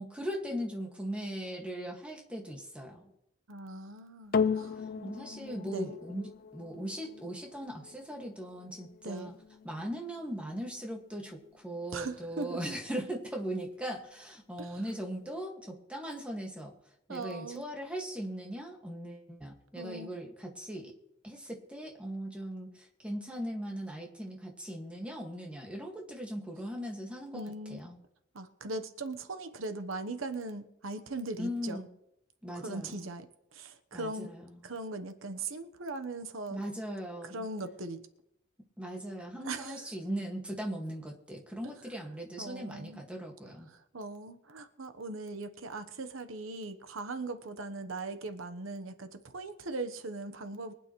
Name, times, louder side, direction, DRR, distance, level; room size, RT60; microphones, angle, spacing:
voice 1, 0.0-3.1 4.8-9.3 9.6-16.7 17.1-20.9 21.2-27.4 27.7-28.0 31.4-31.9 32.4-33.1 33.9-34.6 36.5-37.4 38.8-43.7, equal, 5° right, 1 dB, 1.8 m, -39 dB
voice 2, 3.5-6.0 9.0-9.3 11.9-12.6 14.6-14.9 17.1-17.7 19.7-20.1 27.3-27.8 28.3-31.8 32.5-33.3 33.5-34.3 34.6-36.6 37.2-38.0 39.4-39.9 42.4-43.0 43.7-50.7, right 2 dB, 90° right, 9 dB, 1.0 m, -40 dB
sound 1, 4.3-12.9 13.6-13.7, left 6 dB, 50° left, 0.4 m, -38 dB
23.5 x 9.1 x 3.1 m, 0.81 s
head